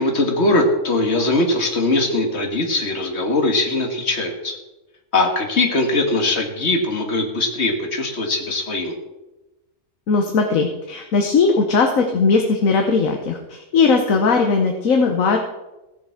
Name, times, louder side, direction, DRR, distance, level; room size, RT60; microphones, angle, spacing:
voice 1, 0.0-4.6 5.1-8.9, left 2 dB, 50° left, 3 dB, 2.0 m, -21 dB
voice 2, 10.1-15.4, left 4 dB, 65° left, 3 dB, 1.4 m, -18 dB
16.0 x 7.0 x 5.9 m, 1.0 s
omnidirectional pair, 1.5 m